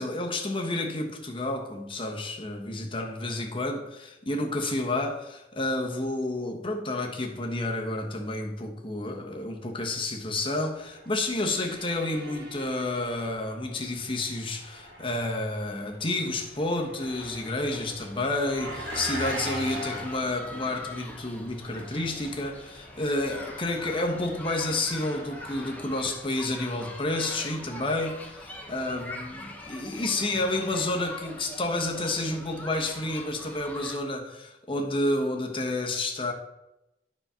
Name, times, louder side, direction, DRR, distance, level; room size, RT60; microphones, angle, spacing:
voice 1, 0.0-36.3, left 2 dB, 30° left, 1.1 m, -30 dB
Engine, 10.7-26.5, right 1 dB, 90° right, 2.5 m, -43 dB
sound 1, 11.0-14.1, right 1 dB, 65° right, 1.5 m, -48 dB
sound 2, 17.0-34.0, left 2 dB, 10° left, 1.0 m, -43 dB
9.9 x 4.4 x 5.7 m
head